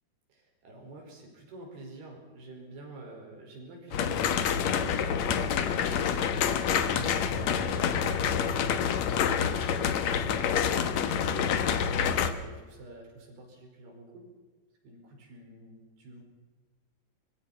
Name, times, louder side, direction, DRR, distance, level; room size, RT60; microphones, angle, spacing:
voice 1, 0.3-5.9 7.4-9.9 10.2-11.5 12.1-14.3 14.8-16.2, right 2 dB, 85° right, 1 dB, 7.1 m, -48 dB
sound 1, 3.9-12.3, left 7 dB, 60° left, 2.0 m, -27 dB
25.0 x 22.0 x 5.9 m, 1.3 s
omnidirectional pair, 4.4 m